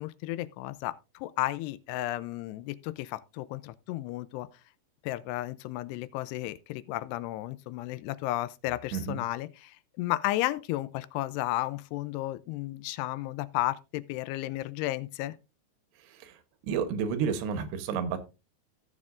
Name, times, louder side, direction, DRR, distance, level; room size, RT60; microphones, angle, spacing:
voice 1, 0.0-4.5 5.0-15.4, left 17 dB, 90° left, 2.7 m, -33 dB
voice 2, 8.9-9.2 16.1-16.4 16.6-18.2, right 6 dB, 90° right, 3.2 m, -31 dB
16.0 x 7.3 x 2.5 m
omnidirectional pair, 4.7 m